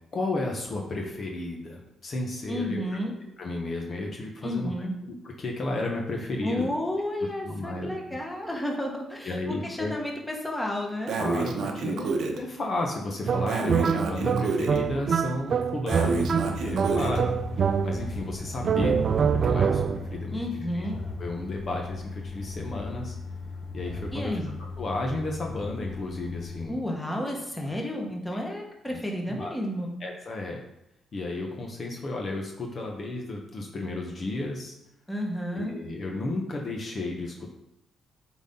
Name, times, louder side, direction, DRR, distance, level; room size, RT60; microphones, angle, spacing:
voice 1, 0.1-3.1 3.4-6.7 7.4-8.2 9.2-9.9 11.2-17.3 17.6-20.9 21.2-23.1 23.7-24.4 24.8-26.8 27.9-28.0 28.4-28.5 28.9-29.0 29.3-29.5 30.0-30.6 31.1-34.7 35.5-37.5, left 2 dB, 45° left, 0 dB, 1.1 m, -33 dB
voice 2, 2.5-3.1 4.4-4.9 6.4-11.2 20.3-21.0 24.1-24.5 26.7-29.9 35.1-35.7, left 1 dB, 10° left, 0 dB, 1.4 m, -31 dB
Breathing, 11.1-12.4 13.5-14.8 15.9-17.2, right 4 dB, 70° right, 0.9 m, -29 dB
sound 1, 13.3-18.2 18.6-20.2, right 7 dB, 50° right, 0.3 m, -26 dB
sound 2, 15.9-26.7, left 3 dB, 60° left, 1.9 m, -37 dB
8.0 x 4.1 x 3.9 m, 0.83 s
cardioid pair, 90°, 0 cm